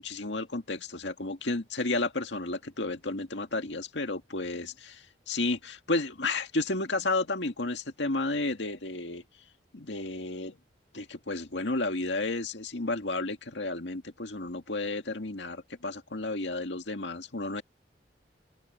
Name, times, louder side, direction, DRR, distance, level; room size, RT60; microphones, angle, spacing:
voice 1, 0.0-9.2 9.7-10.6 10.9-17.6, left 2 dB, 80° left, 2.0 m, -32 dB
head